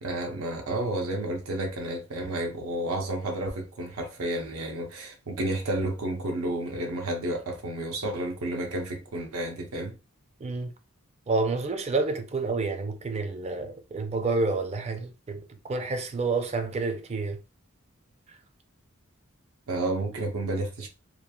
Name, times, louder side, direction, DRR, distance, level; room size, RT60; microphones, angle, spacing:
voice 1, 0.0-10.0 19.7-20.9, right 1 dB, 85° right, 0.6 m, -31 dB
voice 2, 10.4-10.7 11.3-17.4, right 3 dB, 30° right, 0.4 m, -29 dB
3.1 x 2.3 x 2.2 m
head